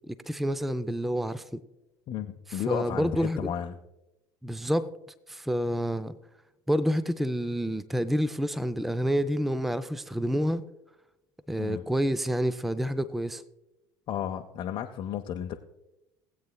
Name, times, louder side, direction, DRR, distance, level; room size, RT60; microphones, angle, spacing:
voice 1, 0.1-1.6 2.5-3.5 4.4-4.9 5.3-6.2 6.7-10.6 11.5-13.4, equal, ahead, 0.4 m, -28 dB
voice 2, 2.1-3.8 11.6-11.8 14.1-15.5, left 10 dB, 40° left, 0.7 m, -33 dB
19.5 x 8.4 x 2.3 m
figure-of-eight pair, 65°, 11 cm